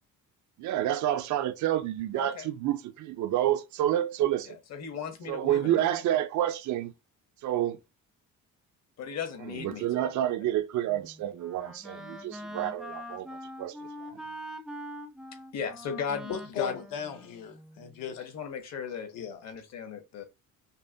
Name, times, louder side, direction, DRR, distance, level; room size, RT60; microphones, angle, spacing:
voice 1, 0.6-4.6 5.3-6.9 7.4-7.8 9.5-13.3 13.6-13.8, right 12 dB, 60° right, 0.5 m, -29 dB
voice 2, 2.1-2.5 4.7-5.9 9.0-10.1 15.5-16.8 18.2-19.1 19.4-20.2, left 6 dB, 50° left, 1.0 m, -36 dB
Wind instrument woodwind instrument, 10.9-18.0, equal, ahead, 0.4 m, -44 dB
voice 3, 16.3-18.2 19.1-19.4, left 8 dB, 80° left, 0.9 m, -37 dB
5.3 x 2.0 x 2.6 m
cardioid pair, 135°, 33 cm